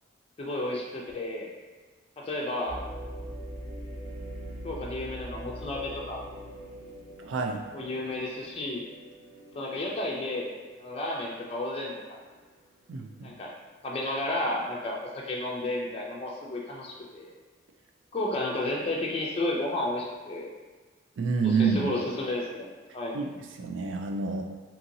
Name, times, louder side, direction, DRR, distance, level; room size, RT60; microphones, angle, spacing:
voice 1, 0.4-1.5 2.2-2.8 4.6-6.2 7.7-8.8 9.5-10.5 10.8-11.9 13.2-13.5 13.8-17.3 18.1-20.5 21.4-22.7 22.9-23.2, left 1 dB, 30° left, -3 dB, 0.4 m, -32 dB
sound 1, 2.7-12.6 13.1-13.2 13.8-14.2, right 1 dB, 35° right, 1.0 m, -43 dB
voice 2, 7.2-7.6 12.9-13.3 21.2-21.9 23.1-24.4, right 5 dB, 80° right, 3 dB, 0.4 m, -28 dB
2.9 x 2.7 x 2.6 m, 1.4 s
head